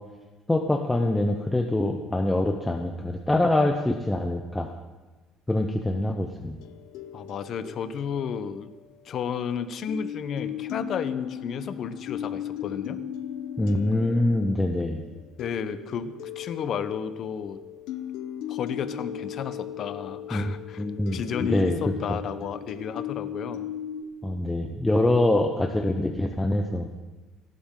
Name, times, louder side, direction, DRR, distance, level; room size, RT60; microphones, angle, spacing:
voice 1, 0.5-4.7 5.5-6.6 13.6-15.0 20.3-21.8 22.1-22.2 24.2-26.9, left 1 dB, 5° left, 3 dB, 0.7 m, -25 dB
sound 1, 6.6-9.4 9.9-24.0, left 9 dB, 75° left, 0.9 m, -37 dB
voice 2, 7.1-8.7 9.0-13.0 15.4-17.6 18.5-20.8 21.1-23.7, left 7 dB, 40° left, 12 dB, 0.9 m, -32 dB
29.5 x 11.5 x 3.8 m, 1.2 s
cardioid pair, 170°, 0 cm